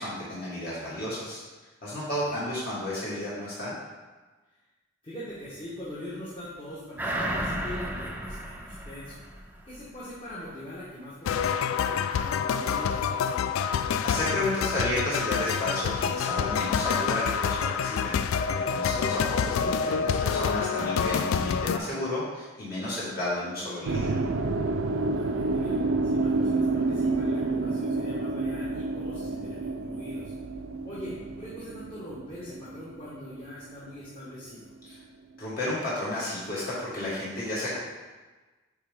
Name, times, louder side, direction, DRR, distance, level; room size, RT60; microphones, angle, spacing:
voice 1, 0.0-1.4 1.8-3.7 13.7-18.2 18.7-24.1 34.8-34.9 35.4-37.8, left 1 dB, 50° left, -9 dB, 1.9 m, -32 dB
voice 2, 1.9-2.4 5.0-9.2 9.7-13.7 18.7-19.1 24.9-25.8 26.0-30.3 30.8-34.7, left 1 dB, 25° left, -9 dB, 1.2 m, -42 dB
Crash Thud, 7.0-9.9 10.3-10.4, right 1 dB, 10° right, 0.5 m, -33 dB
sound 1, 11.3-21.8, left 7 dB, 90° left, 0.3 m, -27 dB
sound 2, 23.9-34.0, right 3 dB, 85° right, 0.5 m, -29 dB
8.5 x 3.5 x 3.6 m, 1.2 s
head